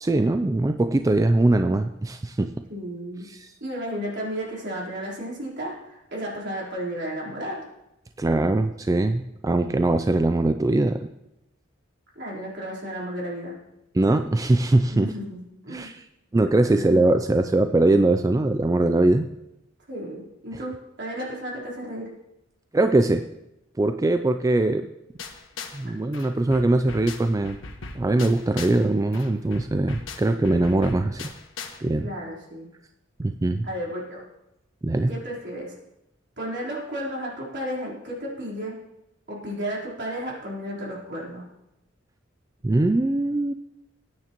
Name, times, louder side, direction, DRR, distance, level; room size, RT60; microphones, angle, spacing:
voice 1, 0.0-2.5 3.3-3.5 8.2-11.1 13.9-15.1 15.7-16.0 16.3-19.3 22.7-23.2 23.8-24.9 25.7-27.6 28.0-31.3 31.8-32.1 33.2-33.7 34.8-35.1 42.6-43.5, right 2 dB, 15° right, 8 dB, 0.3 m, -21 dB
voice 2, 2.7-3.3 3.6-7.6 12.2-13.5 14.9-15.9 16.7-16.9 19.9-22.1 32.0-32.7 33.6-34.3 35.1-35.7 36.4-38.8 39.3-41.5, equal, 60° right, -4 dB, 3.8 m, -33 dB
sound 1, 25.2-25.9 26.1-28.9 29.1-31.8, left 4 dB, 80° left, 1.3 m, -39 dB
19.0 x 9.5 x 3.0 m, 0.90 s
head